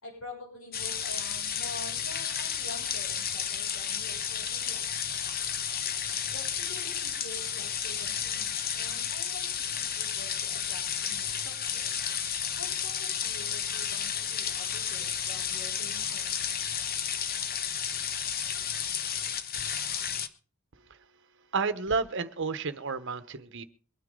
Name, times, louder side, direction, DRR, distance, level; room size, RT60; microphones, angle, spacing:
voice 1, 0.0-4.9 6.3-12.0 12.6-16.3, left 2 dB, 70° left, -2 dB, 6.4 m, -47 dB
sound 1, 0.7-20.3, left 8 dB, 45° left, 1.0 m, -32 dB
voice 2, 21.5-23.6, right 4 dB, 60° right, 11 dB, 1.1 m, -31 dB
23.0 x 9.6 x 3.8 m, 0.40 s
head